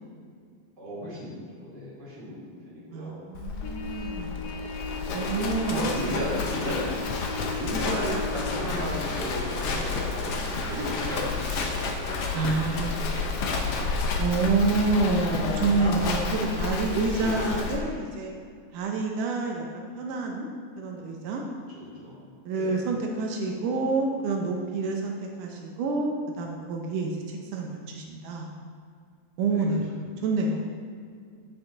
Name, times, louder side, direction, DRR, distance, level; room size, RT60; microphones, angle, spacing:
voice 1, 0.8-2.4 2.7-3.2 4.9-6.8 7.3-12.0 17.2-17.6 21.7-22.2 22.5-22.8 29.4-29.6, equal, 35° right, -8 dB, 3.4 m, -35 dB
voice 2, 2.9-4.6 5.1-5.8 12.3-13.2 14.2-18.3 18.7-20.5 20.8-21.4 22.5-28.5 29.4-29.9 30.2-30.8, right 3 dB, 85° right, 1 dB, 2.5 m, -28 dB
Livestock farm animals working animals, 3.3-17.8, left 4 dB, 65° left, 1.7 m, -30 dB
Trumpet, 3.6-8.7, left 4 dB, 85° left, 2.5 m, -38 dB
sound 1, 5.4-13.0, equal, 65° right, 3.6 m, -43 dB
15.0 x 6.1 x 3.9 m, 2.2 s
omnidirectional pair, 3.6 m